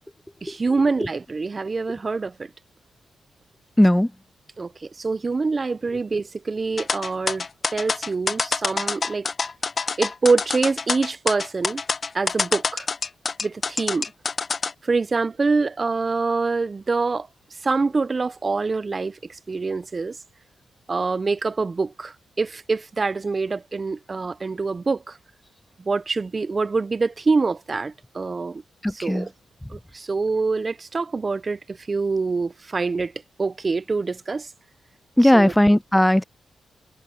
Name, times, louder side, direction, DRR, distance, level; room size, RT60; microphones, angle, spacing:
voice 1, 0.4-2.5 4.6-7.4 7.7-9.3 10.0-11.8 12.1-12.9 13.4-14.1 14.8-17.3 17.6-19.2 19.5-20.2 20.9-25.2 25.9-28.6 28.9-29.3 29.7-33.1 33.4-34.5 35.3-35.5, right 4 dB, 35° right, 0.5 m, -25 dB
voice 2, 3.8-4.1 28.8-29.3 35.2-36.2, left 1 dB, 5° left, 0.6 m, -17 dB
sound 1, 6.8-14.7, left 4 dB, 45° left, 1.0 m, -26 dB
cardioid pair, 75°, 0 cm